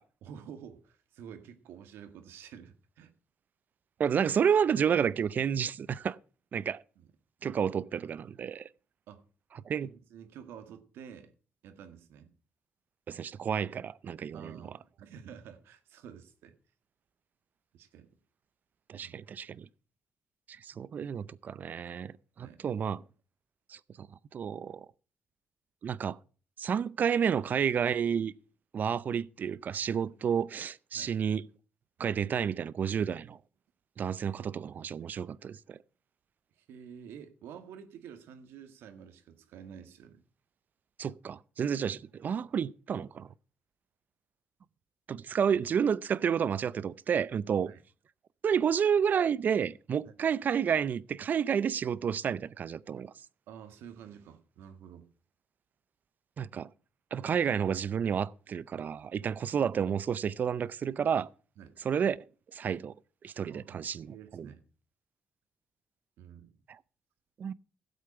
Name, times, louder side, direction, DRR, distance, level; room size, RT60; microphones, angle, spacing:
voice 1, 0.2-3.1 7.0-7.1 9.1-9.2 9.8-11.3 11.6-12.3 14.3-16.6 17.7-18.1 19.0-19.1 22.4-22.6 30.9-31.2 36.6-40.2 45.5-45.6 47.7-47.8 50.0-50.1 53.5-55.1 57.2-57.3 61.6-61.8 63.5-64.7 66.2-66.5, right 8 dB, 85° right, 1.6 m, -49 dB
voice 2, 4.0-6.2 6.5-6.8 7.4-8.7 9.6-9.9 13.1-14.6 18.9-19.7 20.6-23.0 23.7-24.1 24.3-24.9 25.8-26.2 26.6-28.3 28.7-31.4 32.0-33.4 34.0-35.8 41.0-43.3 45.1-47.7 48.4-53.1 56.4-56.7 57.1-61.3 61.8-62.2 62.5-62.9 63.2-64.5 66.7-66.8 67.4-67.5, right 7 dB, 50° right, 0.5 m, -30 dB
12.5 x 8.2 x 5.8 m
cardioid pair, 100°, 4 cm